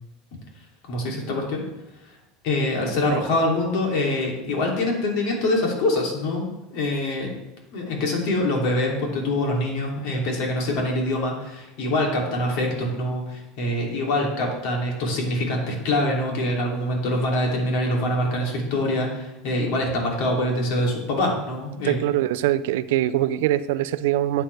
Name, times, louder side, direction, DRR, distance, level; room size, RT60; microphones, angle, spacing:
voice 1, 0.8-1.6 2.4-7.3 7.7-22.0, left 1 dB, 60° left, -1 dB, 2.9 m, -24 dB
voice 2, 21.8-24.4, right 13 dB, 80° right, 14 dB, 0.5 m, -23 dB
11.5 x 8.2 x 3.4 m, 0.96 s
supercardioid pair, 160°, 0 cm